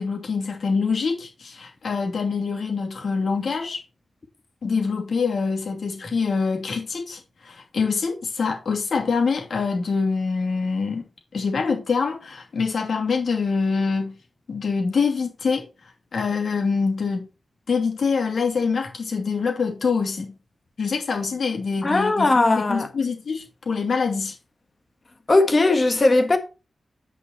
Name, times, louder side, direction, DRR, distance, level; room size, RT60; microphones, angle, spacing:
voice 1, 0.0-3.8 4.6-11.0 11.3-14.2 14.5-15.6 16.1-17.3 17.7-20.3 20.8-24.3, left 5 dB, 60° left, 2.7 m, -25 dB
voice 2, 21.8-22.9 25.3-26.4, left 2 dB, 30° left, 1.5 m, -18 dB
9.8 x 5.7 x 4.3 m
wide cardioid pair, 155°, 0 cm